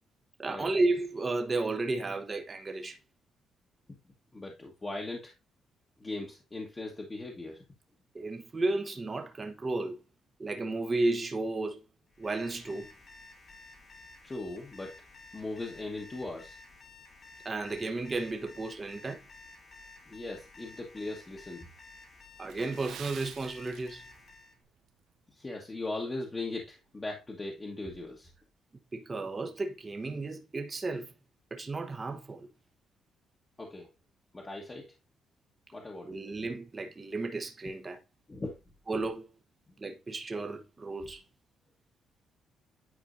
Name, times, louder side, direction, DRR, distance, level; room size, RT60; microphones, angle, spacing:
voice 1, 0.4-3.0 8.1-10.0 10.4-11.8 12.2-12.9 17.4-19.2 22.4-24.0 28.9-31.1 31.5-32.5 36.0-38.0 38.9-39.3 39.8-41.2, right 2 dB, 30° right, 1.0 m, -33 dB
voice 2, 4.3-5.3 6.0-7.6 14.2-14.9 15.3-16.6 20.1-21.7 25.3-28.3 33.6-33.9 34.3-34.9 35.7-36.2 38.3-38.5, left 2 dB, 25° left, 1.4 m, -39 dB
Alarm, 12.1-24.6, left 3 dB, 50° left, 1.7 m, -53 dB
Water / Splash splatter, 22.5-24.4 24.7-24.9 25.5-25.7 26.1-26.2, right 10 dB, 80° right, 0.5 m, -48 dB
9.7 x 4.3 x 2.6 m
cardioid pair, 90°, 0 cm